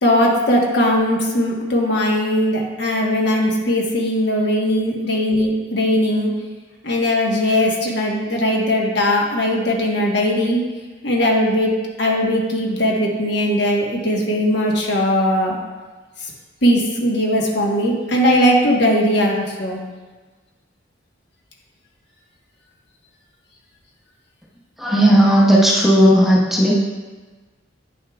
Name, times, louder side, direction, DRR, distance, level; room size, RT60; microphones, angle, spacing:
voice 1, 0.0-6.3 6.8-10.6 11.0-11.7 12.0-15.6 16.2-16.3 16.6-19.8, left 1 dB, 65° left, -1 dB, 1.3 m, -19 dB
voice 2, 24.8-26.7, equal, ahead, -3 dB, 0.7 m, -14 dB
9.1 x 6.5 x 2.4 m, 1.3 s
head